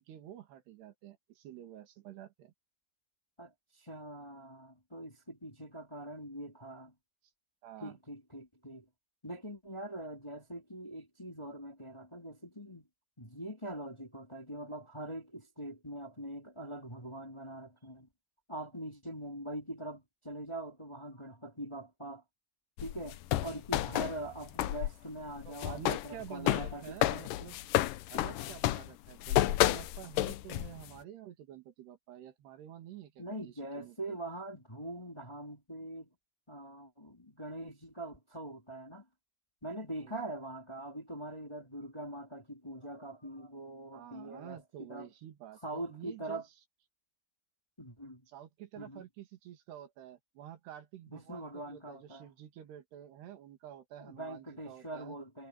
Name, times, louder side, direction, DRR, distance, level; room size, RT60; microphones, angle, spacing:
voice 1, 0.0-2.5 7.6-8.0 25.5-27.6 28.1-34.2 40.0-40.2 43.9-46.4 48.3-55.2, right 11 dB, 75° right, 4.4 m, -49 dB
voice 2, 3.4-6.9 7.8-8.8 9.2-12.9 13.2-18.1 18.5-22.2 22.8-27.2 33.2-36.1 36.5-39.0 39.6-45.1 45.6-46.5 47.8-48.2 48.8-49.0 51.1-52.3 54.0-55.5, right 1 dB, 10° left, 2.4 m, -43 dB
sound 1, 22.8-24.9 25.2-30.9, left 15 dB, 85° left, 1.9 m, -31 dB
omnidirectional pair, 4.8 m